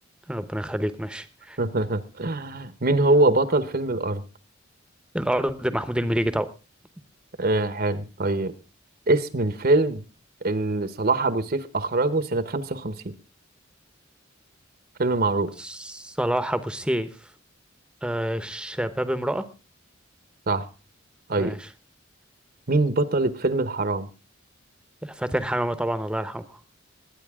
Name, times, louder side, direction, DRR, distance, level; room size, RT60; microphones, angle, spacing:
voice 1, 0.3-1.6 5.1-6.5 15.6-17.1 18.0-19.4 21.4-21.7 25.0-26.4, right 1 dB, 5° right, 12 dB, 0.9 m, -27 dB
voice 2, 1.6-4.2 7.4-8.5 9.1-10.0 10.4-13.1 15.0-15.5 20.5-20.6 21.3-21.5 22.7-24.1, right 2 dB, 50° right, 13 dB, 1.0 m, -23 dB
21.5 x 9.2 x 3.6 m, 0.31 s
head